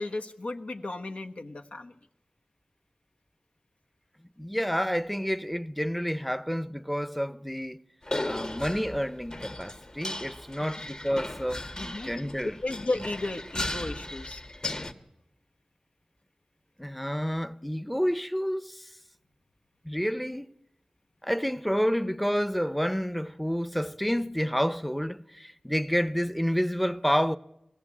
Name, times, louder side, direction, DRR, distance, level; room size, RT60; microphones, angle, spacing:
voice 1, 0.0-1.9 11.8-12.1 12.4-14.4, left 2 dB, 80° left, 1.3 m, -34 dB
voice 2, 4.4-7.8 8.2-12.6 16.8-18.9 19.8-20.5 21.2-27.4, equal, ahead, 0.7 m, -29 dB
sound 1, 8.0-14.9, left 1 dB, 40° left, 1.5 m, -36 dB
20.5 x 15.0 x 8.5 m
wide cardioid pair, 50°, 2 cm